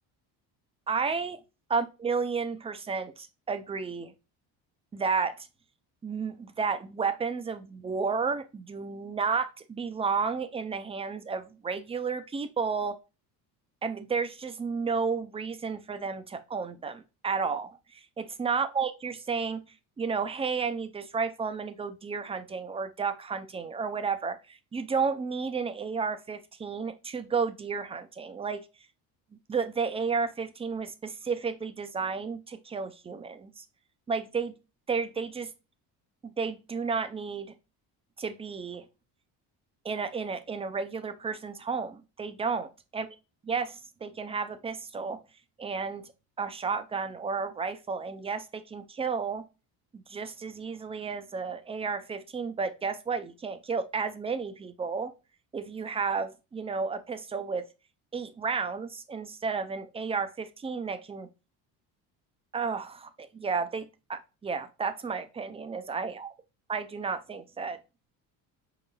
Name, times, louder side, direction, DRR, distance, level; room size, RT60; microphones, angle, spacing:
voice 1, 0.9-1.4 1.7-4.1 4.9-5.5 6.0-13.0 13.8-19.6 20.0-28.6 29.5-33.6 34.1-34.5 34.9-35.5 36.4-37.5 38.2-38.8 39.8-43.1 43.5-45.2 45.6-46.0 46.4-49.4 49.9-55.1 55.5-57.6 58.1-61.3 62.5-63.8 64.1-66.3 66.7-67.8, right 5 dB, 15° right, 0.4 m, -32 dB
5.2 x 3.9 x 2.2 m
cardioid pair, 135°, 38 cm